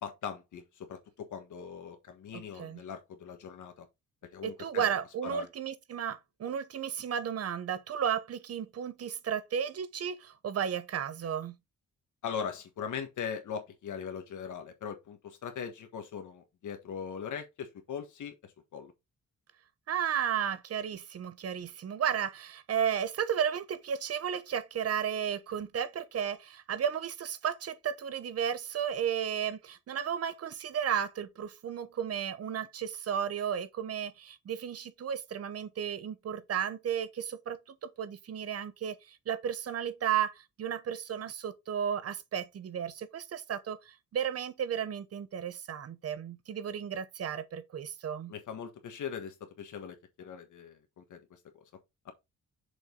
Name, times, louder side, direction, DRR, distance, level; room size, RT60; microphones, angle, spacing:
voice 1, 0.0-3.9 4.3-4.9 5.2-5.5 12.2-18.3 18.7-18.9 48.3-51.4 52.0-52.1, left 7 dB, 75° left, 1.5 m, -40 dB
voice 2, 2.3-2.8 4.4-11.5 19.9-48.3, right 8 dB, 50° right, 0.9 m, -34 dB
6.5 x 5.2 x 3.8 m
wide cardioid pair, 170°, 31 cm